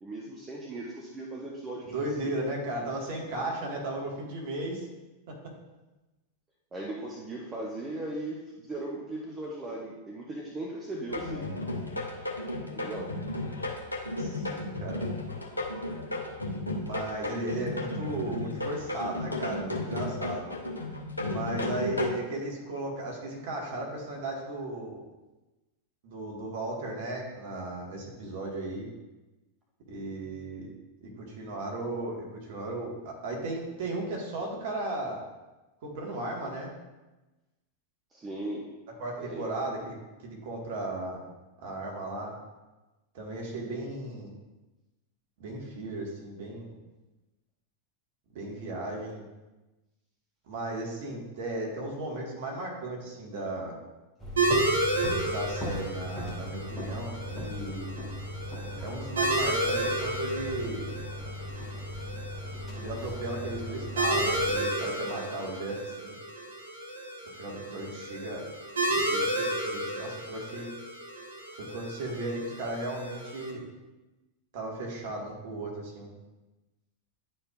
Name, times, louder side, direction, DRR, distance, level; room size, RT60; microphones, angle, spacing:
voice 1, 0.0-2.4 6.7-11.6 12.7-13.1 16.9-17.0 38.1-38.7 39.2-39.6 49.0-49.3, right 1 dB, 20° right, -1 dB, 0.8 m, -38 dB
voice 2, 1.8-4.9 5.3-5.5 14.2-15.0 16.8-20.5 21.3-25.0 26.0-28.9 29.9-30.7 31.0-35.2 35.8-36.7 39.0-39.9 40.2-41.2 41.6-42.4 43.1-44.3 45.4-46.7 48.3-49.3 50.5-53.8 55.3-57.9 58.8-60.9 62.7-66.1 67.3-68.5 68.9-70.7 71.6-73.6 74.5-76.1, right 2 dB, 50° right, 0 dB, 1.7 m, -36 dB
sound 1, 11.1-22.1, left 2 dB, 85° left, 0.9 m, -34 dB
sound 2, 54.2-64.6, left 1 dB, 10° left, 1.7 m, -38 dB
sound 3, 54.4-73.5, right 1 dB, 70° right, 0.9 m, -32 dB
10.0 x 4.4 x 2.4 m, 1.1 s
figure-of-eight pair, 90°, 0 cm